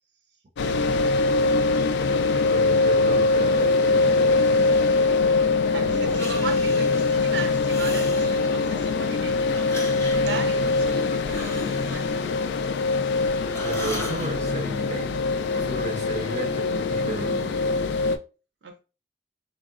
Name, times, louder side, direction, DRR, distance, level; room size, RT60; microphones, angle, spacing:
sound 1, 0.6-18.2, left 3 dB, 75° left, 0.3 m, -23 dB
voice 1, 1.8-4.8 5.8-6.2 13.6-17.9, right 1 dB, 40° right, 0.5 m, -34 dB
voice 2, 5.7-9.7 10.1-12.1 18.6-18.8, right 4 dB, 85° right, 0.5 m, -37 dB
Breathing, 6.1-7.2 7.6-8.8 9.5-13.1 13.4-14.3, left 2 dB, 15° left, 0.5 m, -39 dB
3.5 x 2.0 x 2.4 m
head